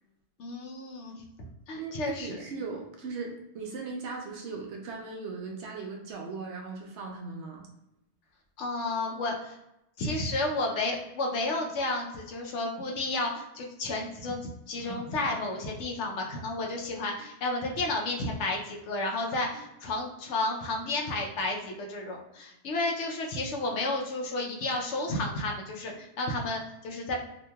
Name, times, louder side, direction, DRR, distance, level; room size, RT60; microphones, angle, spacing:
voice 1, 0.4-2.4 8.6-9.6 10.0-14.4 14.7-27.2, left 2 dB, 70° left, 0 dB, 0.9 m, -32 dB
voice 2, 1.8-7.7, right 4 dB, 70° right, 1 dB, 0.9 m, -38 dB
2.9 x 2.5 x 2.2 m, 0.88 s
omnidirectional pair, 1.3 m